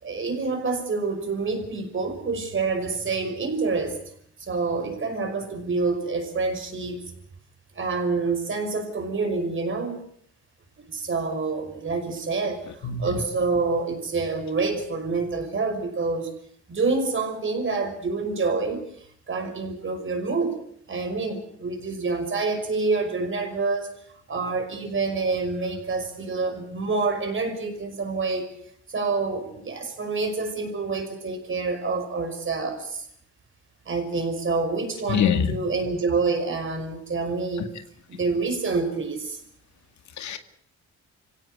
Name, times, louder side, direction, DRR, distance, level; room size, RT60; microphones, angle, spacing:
voice 1, 0.0-4.0 4.4-7.0 7.8-10.0 10.9-16.3 16.7-18.8 19.3-20.6 20.9-23.9 24.3-28.5 28.9-33.0 33.9-37.6 38.1-39.4, right 4 dB, 40° right, 5.6 m, -27 dB
voice 2, 12.8-13.2 35.1-35.6 37.6-37.7 40.2-40.4, left 7 dB, 70° left, 2.1 m, -24 dB
25.0 x 17.0 x 8.0 m
cardioid pair, 90°, 30 cm